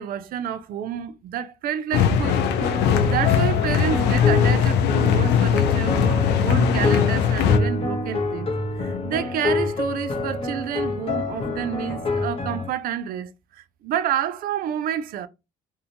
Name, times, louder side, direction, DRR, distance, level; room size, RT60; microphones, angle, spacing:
voice 1, 0.0-2.4 3.0-8.5 8.8-15.3, right 9 dB, 60° right, 0.4 m, -29 dB
sound 1, 1.9-7.6, left 8 dB, 80° left, 0.4 m, -20 dB
sound 2, 2.3-12.7, left 3 dB, 35° left, 0.7 m, -27 dB
2.7 x 2.1 x 2.7 m
cardioid pair, 110°, 17 cm